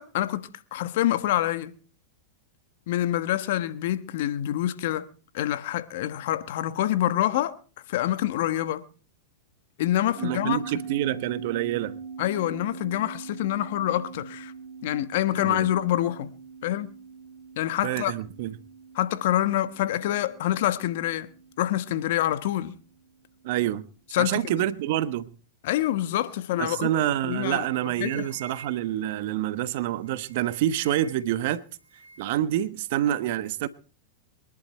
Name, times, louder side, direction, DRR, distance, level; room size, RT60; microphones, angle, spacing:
voice 1, 0.0-1.7 2.9-5.1 5.3-7.6 7.9-8.8 9.8-10.6 12.2-14.5 14.8-16.3 16.6-16.9 17.6-18.1 18.9-21.3 21.6-22.8 24.1-24.6 25.6-26.9 27.2-27.7 28.0-28.3, left 13 dB, 60° left, 1.3 m, -26 dB
sound 1, 10.2-22.9, right 5 dB, 35° right, 4.3 m, -42 dB
voice 2, 10.2-12.0 15.4-15.7 17.8-18.5 23.4-23.8 24.2-25.3 26.6-31.6 32.2-33.7, right 12 dB, 60° right, 1.2 m, -27 dB
sound 2, 26.9-27.1 27.4-29.1 29.9-31.4 31.6-32.4, right 5 dB, 85° right, 2.7 m, -48 dB
23.0 x 11.5 x 4.5 m
hypercardioid pair, 105°, 0 cm